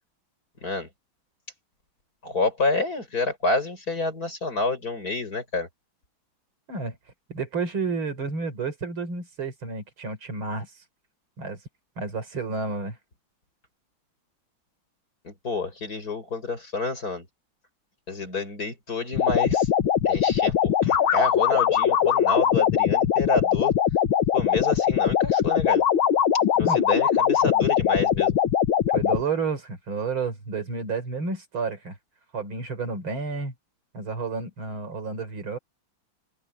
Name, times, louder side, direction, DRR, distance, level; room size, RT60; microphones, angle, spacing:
voice 1, 2.2-5.7 15.2-17.3 18.1-19.7 20.0-23.8 24.3-25.8 26.6-28.4, left 3 dB, 45° left, 5.7 m, -28 dB
voice 2, 7.3-10.7 11.4-11.6 12.0-13.0 26.7-26.8 28.9-32.0 32.3-33.5 33.9-35.6, right 4 dB, 85° right, 4.8 m, -30 dB
sound 1, 19.1-29.2, left 9 dB, 90° left, 2.0 m, -21 dB
open air
omnidirectional pair, 2.2 m